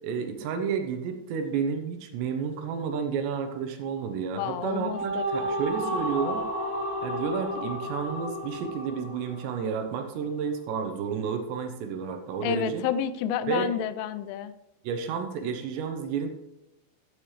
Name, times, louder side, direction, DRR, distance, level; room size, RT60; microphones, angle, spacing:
voice 1, 0.0-6.4 7.0-12.9 13.5-13.7 14.8-16.3, right 6 dB, 75° right, 6 dB, 2.9 m, -31 dB
voice 2, 4.3-5.5 12.4-14.5, left 9 dB, 85° left, 13 dB, 3.1 m, -30 dB
sound 1, 4.5-10.0, equal, 40° right, 0.3 m, -32 dB
14.5 x 8.7 x 3.3 m, 0.91 s
omnidirectional pair, 5.4 m